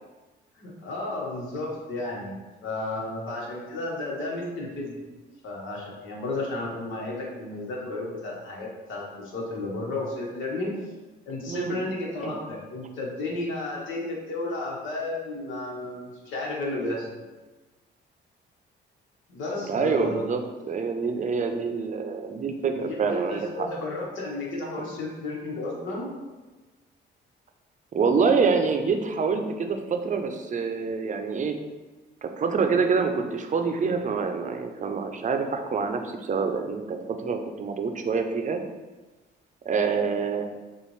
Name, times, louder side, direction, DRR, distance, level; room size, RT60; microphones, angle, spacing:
voice 1, 0.5-2.3 2.6-5.0 5.4-10.7 11.3-17.1 19.3-20.3 22.8-26.1, left 2 dB, 80° left, -2 dB, 1.3 m, -32 dB
voice 2, 11.5-11.8 12.2-12.4 19.7-23.7 27.9-31.5 32.2-38.6 39.6-40.4, right 5 dB, 40° right, 5 dB, 0.6 m, -26 dB
6.6 x 2.5 x 3.2 m, 1.2 s
cardioid pair, 90°, 20 cm